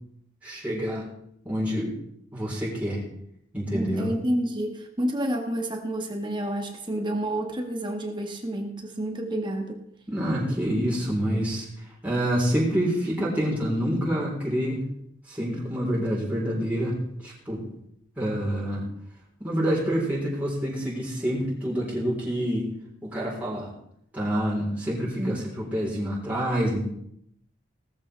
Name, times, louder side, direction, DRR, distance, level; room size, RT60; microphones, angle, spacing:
voice 1, 0.4-1.1 1.4-1.9 2.3-3.0 3.5-4.1 10.1-11.7 12.0-14.8 15.3-17.6 18.2-18.9 19.4-22.7 23.0-23.7 24.1-26.8, equal, 10° right, -6 dB, 4.0 m, -27 dB
voice 2, 3.7-9.8 25.2-25.4, right 1 dB, 25° right, 3 dB, 1.6 m, -29 dB
18.0 x 14.0 x 3.4 m, 0.73 s
head